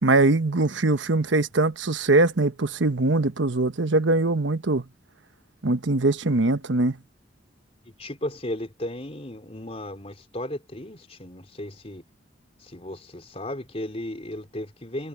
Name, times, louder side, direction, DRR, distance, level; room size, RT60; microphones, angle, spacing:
voice 1, 0.0-4.8 5.6-7.0, right 2 dB, 80° right, 1.2 m, -22 dB
voice 2, 7.8-12.0 12.6-15.1, left 1 dB, 35° left, 3.7 m, -35 dB
head